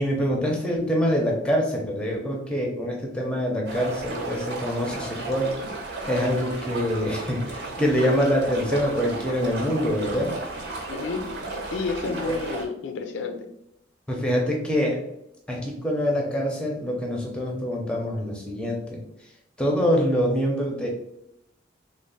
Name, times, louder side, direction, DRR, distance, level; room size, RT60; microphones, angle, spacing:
voice 1, 0.0-5.5 6.0-10.3 14.1-15.0 15.5-19.0 19.6-20.9, equal, 5° left, 0.5 m, -25 dB
sound 1, 3.7-12.6, right 2 dB, 55° right, 0.7 m, -34 dB
voice 2, 10.9-11.3 11.7-13.5, left 4 dB, 70° left, 0.4 m, -31 dB
3.1 x 2.0 x 3.8 m
head